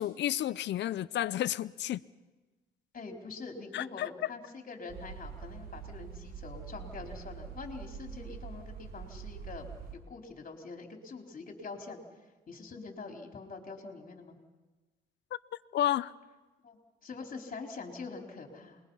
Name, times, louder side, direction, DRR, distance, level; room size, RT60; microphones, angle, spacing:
voice 1, 0.0-2.0 3.7-4.3 15.7-16.1, left 12 dB, 65° left, 0.6 m, -31 dB
voice 2, 2.9-12.0 12.5-14.4 16.6-18.8, left 4 dB, 45° left, 3.9 m, -44 dB
sound 1, 4.9-9.9, right 7 dB, 50° right, 4.9 m, -44 dB
27.5 x 21.5 x 5.6 m
cardioid pair, 90°, 20 cm